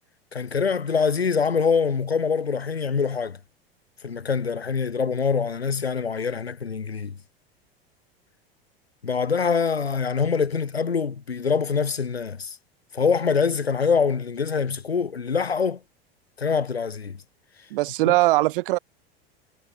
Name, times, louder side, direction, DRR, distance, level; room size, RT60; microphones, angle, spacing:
voice 1, 0.3-3.4 4.0-7.2 9.0-12.6 12.9-15.8 16.4-17.2 18.0-18.1, left 5 dB, 90° left, 1.4 m, -24 dB
voice 2, 17.7-18.8, right 19 dB, 60° right, 0.6 m, -20 dB
figure-of-eight pair, 80°, 30 cm